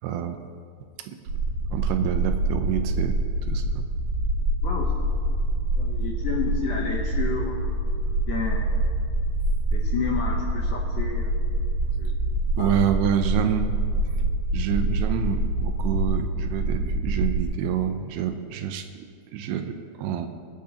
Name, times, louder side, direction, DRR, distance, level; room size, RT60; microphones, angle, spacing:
voice 1, 0.0-0.4 1.0-1.2 1.7-3.9 12.6-13.7 14.5-19.1 19.3-20.3, right 9 dB, 80° right, 8 dB, 2.6 m, -27 dB
sound 1, 1.3-17.4, right 1 dB, 55° right, 2.5 m, -26 dB
voice 2, 4.6-4.9 5.3-5.4 5.8-7.9 8.3-8.7 9.7-11.3 12.0-12.8, left 6 dB, 75° left, -1 dB, 1.9 m, -31 dB
24.5 x 8.5 x 2.9 m, 2.2 s
omnidirectional pair, 4.8 m